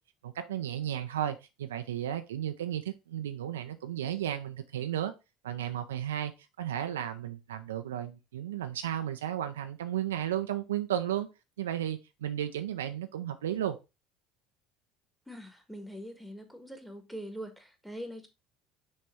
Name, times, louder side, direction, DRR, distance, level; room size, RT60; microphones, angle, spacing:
voice 1, 0.2-5.1 5.4-6.3 6.6-11.3 11.6-13.8, right 11 dB, 75° right, 0.5 m, -34 dB
voice 2, 15.3-18.3, equal, ahead, 1.5 m, -43 dB
6.4 x 3.4 x 4.3 m
figure-of-eight pair, 65°, 0 cm